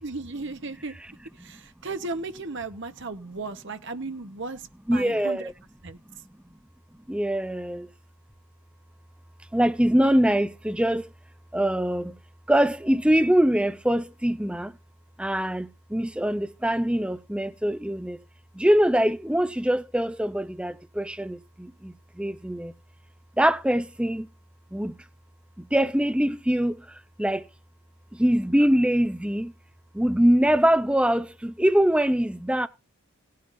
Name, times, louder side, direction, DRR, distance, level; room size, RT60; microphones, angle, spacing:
voice 1, 0.0-0.9 1.3-5.5 5.8-6.0, right 3 dB, 55° right, 1.1 m, -35 dB
voice 2, 4.9-5.5 7.1-7.9 9.5-11.1 11.5-12.1 12.5-14.7 15.2-18.2 18.6-22.7 23.4-24.3 24.7-24.9 25.7-26.8 27.2-27.4 28.2-29.5 29.9-32.7, equal, 5° right, 0.6 m, -23 dB
18.0 x 9.5 x 2.6 m
head